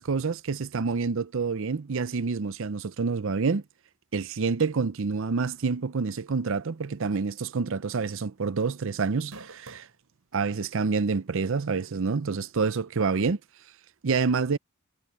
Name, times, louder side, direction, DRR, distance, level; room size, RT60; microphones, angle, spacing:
voice 1, 0.0-3.6 4.1-9.9 10.3-13.4 14.0-14.6, right 4 dB, 60° right, 0.6 m, -27 dB
sound 1, 7.4-7.6 7.9-8.0 9.0-10.0 10.7-10.8 12.4-12.5, right 2 dB, 75° right, 4.7 m, -46 dB
head